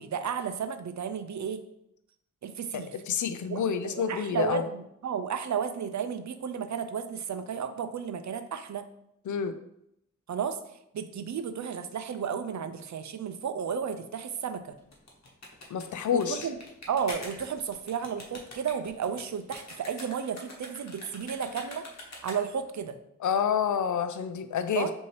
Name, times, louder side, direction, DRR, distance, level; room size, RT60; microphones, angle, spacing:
voice 1, 0.0-1.6 2.4-2.9 3.5-8.8 10.3-10.6 10.9-14.7 16.1-16.6 16.9-21.9 22.2-23.0 24.8-24.9, right 7 dB, 70° right, 9 dB, 0.5 m, -33 dB
voice 2, 2.7-4.6 9.3-9.6 15.7-16.5 23.2-24.9, left 7 dB, 80° left, 10 dB, 0.5 m, -28 dB
sound 1, 14.8-22.7, left 2 dB, 60° left, 1.1 m, -45 dB
5.5 x 2.7 x 3.1 m, 0.79 s
cardioid pair, 65°, 30 cm